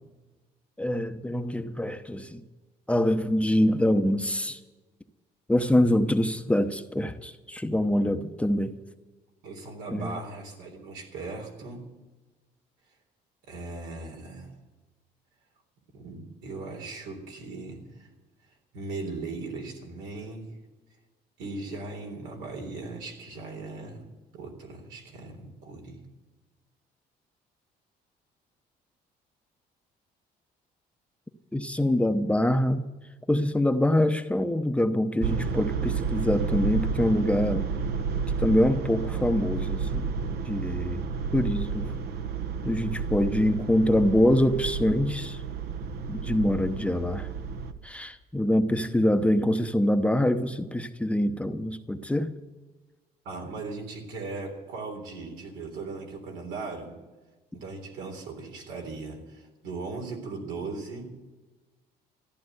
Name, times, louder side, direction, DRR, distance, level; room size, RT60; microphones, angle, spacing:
voice 1, 0.8-2.4 2.9-4.6 5.5-8.8 9.9-10.2 31.5-32.8 33.3-37.7 38.4-40.1 40.5-41.0 41.3-41.9 42.6-45.4 46.1-47.3 47.8-52.3, left 1 dB, 5° left, 0.8 m, -25 dB
voice 2, 9.4-11.9 13.5-14.5 15.9-18.1 18.7-20.5 21.4-24.1 24.3-26.0 53.3-57.0 57.5-61.1, right 3 dB, 90° right, 3.7 m, -38 dB
sound 1, 35.2-47.7, right 5 dB, 65° right, 1.1 m, -31 dB
14.5 x 11.0 x 7.9 m
cardioid pair, 110°, 17 cm